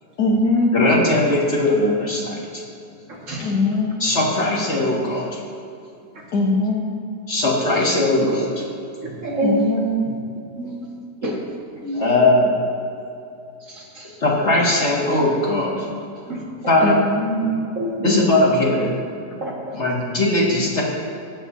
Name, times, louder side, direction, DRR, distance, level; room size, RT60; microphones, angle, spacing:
voice 1, 0.2-0.8 3.4-4.0 6.3-6.9 9.4-10.1 16.8-17.5, left 2 dB, 60° left, -4 dB, 1.8 m, -21 dB
voice 2, 0.7-2.6 4.0-5.3 7.3-8.5 11.9-12.6 14.2-15.9 16.7-17.0 18.0-19.2 19.7-20.8, left 1 dB, 40° left, -4 dB, 2.2 m, -19 dB
voice 3, 9.0-9.7 10.0-10.2 10.6-10.9 11.2-11.4 11.8-12.0 14.0-14.1 16.3-16.4 17.8-17.9 19.4-19.8, right 1 dB, 45° right, -3 dB, 2.1 m, -26 dB
21.5 x 8.2 x 2.7 m, 2.6 s
omnidirectional pair, 2.0 m